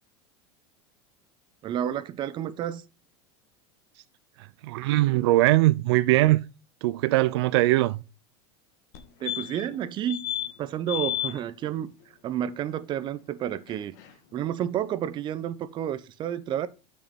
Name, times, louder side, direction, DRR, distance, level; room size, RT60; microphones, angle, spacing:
voice 1, 1.6-2.8 9.2-10.2 10.6-11.9 12.2-14.0 14.3-16.7, right 10 dB, 35° right, 0.8 m, -30 dB
voice 2, 4.6-6.4 6.8-8.0, right 17 dB, 80° right, 0.5 m, -21 dB
sound 1, 8.9-9.0 9.3-9.7 10.1-10.5 10.9-11.3 13.7-13.8 14.0-14.1, left 13 dB, 60° left, 1.8 m, -31 dB
6.6 x 6.0 x 5.2 m
supercardioid pair, 140°, 14 cm